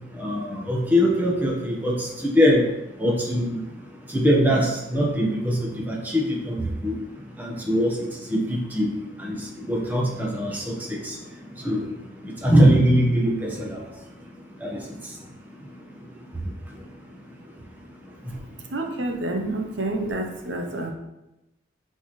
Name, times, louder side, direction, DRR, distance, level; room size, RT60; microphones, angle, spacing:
voice 1, 0.2-2.6 3.0-3.6 4.1-6.9 7.4-8.0 8.3-8.9 9.2-9.4 9.7-11.2 11.6-11.9 12.4-13.8 14.6-14.8, equal, 10° right, -2 dB, 1.3 m, -22 dB
voice 2, 18.7-20.9, right 2 dB, 80° right, 3 dB, 1.0 m, -28 dB
12.0 x 4.4 x 3.3 m, 0.95 s
head